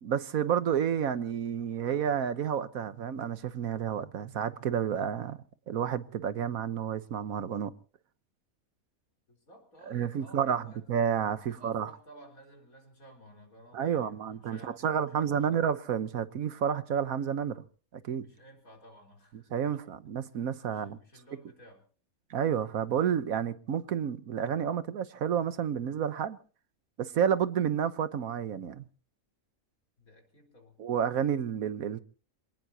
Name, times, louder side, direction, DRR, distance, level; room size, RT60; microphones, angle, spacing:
voice 1, 0.0-7.7 9.9-10.6 10.9-11.9 13.7-17.6 17.9-18.2 19.5-21.0 22.3-26.4 27.0-28.8 30.8-32.0, right 8 dB, 90° right, 1.5 m, -30 dB
voice 2, 9.3-11.1 11.5-15.6 18.2-19.8 20.7-21.8 30.0-30.8, equal, 90° left, 4.5 m, -55 dB
26.5 x 18.5 x 2.9 m
omnidirectional pair, 1.4 m